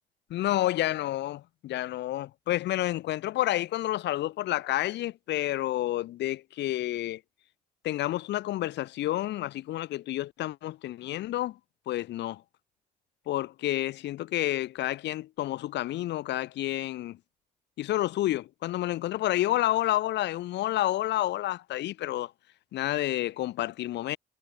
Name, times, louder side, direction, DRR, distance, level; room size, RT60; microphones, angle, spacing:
voice 1, 0.3-7.2 7.8-11.6 11.9-12.4 13.3-17.2 17.8-22.3 22.7-24.2, left 14 dB, 70° left, 0.9 m, -29 dB
hypercardioid pair, 50°, 18 cm